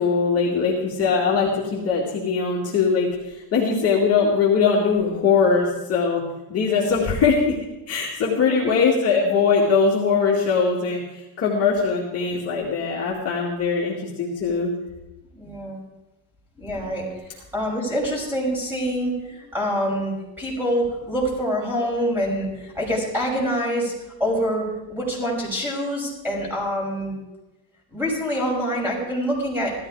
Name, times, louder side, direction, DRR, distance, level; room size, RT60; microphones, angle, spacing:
voice 1, 0.0-6.2 6.5-7.6 7.9-14.7, left 5 dB, 30° left, -4 dB, 2.4 m, -21 dB
voice 2, 6.7-7.0 8.5-8.7 15.3-15.8 16.6-23.9 24.2-27.1 27.9-29.7, equal, 5° right, -3 dB, 6.0 m, -26 dB
16.0 x 13.5 x 4.9 m, 1.0 s
cardioid pair, 145°, 47 cm